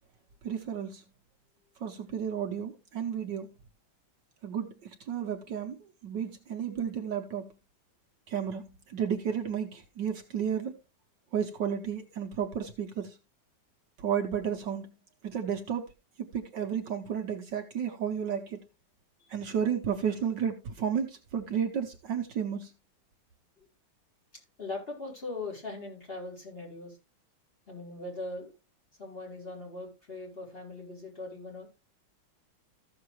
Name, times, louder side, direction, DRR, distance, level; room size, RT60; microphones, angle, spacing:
voice 1, 0.4-1.0 1.8-3.5 4.4-7.5 8.3-10.7 11.3-13.2 14.0-14.9 15.2-15.8 16.2-18.6 19.3-22.7, right 8 dB, 65° right, 1.5 m, -32 dB
voice 2, 24.6-27.0 27.7-28.5 29.0-31.7, left 2 dB, 25° left, 4.5 m, -40 dB
14.5 x 6.7 x 3.1 m
omnidirectional pair, 2.2 m